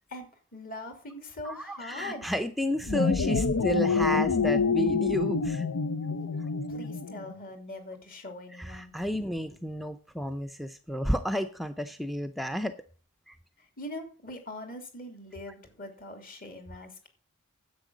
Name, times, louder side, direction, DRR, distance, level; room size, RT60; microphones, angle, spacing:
voice 1, 0.1-2.3 6.7-8.9 9.7-9.8 13.6-17.1, left 1 dB, 40° left, 5 dB, 2.7 m, -42 dB
voice 2, 1.4-5.7 8.6-12.8 13.3-13.4, equal, ahead, 8 dB, 0.5 m, -31 dB
sound 1, 2.7-7.3, left 5 dB, 85° left, 0.7 m, -27 dB
10.5 x 8.2 x 6.2 m, 0.40 s
head